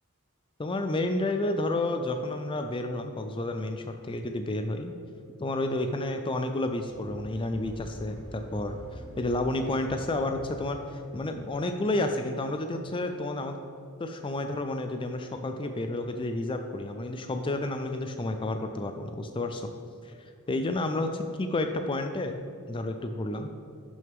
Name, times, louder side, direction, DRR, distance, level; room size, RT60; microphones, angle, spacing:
voice 1, 0.6-5.0 5.4-13.6 14.0-19.7 20.0-20.1 20.5-22.3 22.7-23.5, left 2 dB, 25° left, 6 dB, 0.4 m, -31 dB
sound 1, 6.6-11.8, left 1 dB, 65° right, 2.1 m, -46 dB
11.5 x 6.2 x 3.6 m, 2.5 s
head